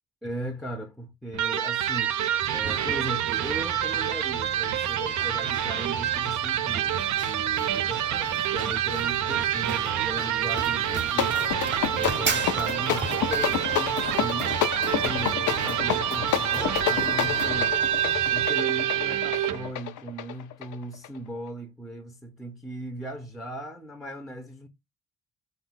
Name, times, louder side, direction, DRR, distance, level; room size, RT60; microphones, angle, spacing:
voice 1, 0.2-2.1 2.5-11.4 11.9-14.6 15.0-17.9 18.3-24.7, right 1 dB, ahead, 0.5 m, -37 dB
Electric guitar, 1.3-19.7, right 10 dB, 70° right, 0.5 m, -27 dB
Run, 2.4-18.5, right 5 dB, 40° right, 0.7 m, -37 dB
sound 1, 10.9-21.2, left 11 dB, 80° left, 0.5 m, -30 dB
3.8 x 2.2 x 3.9 m
cardioid pair, 90°, 30 cm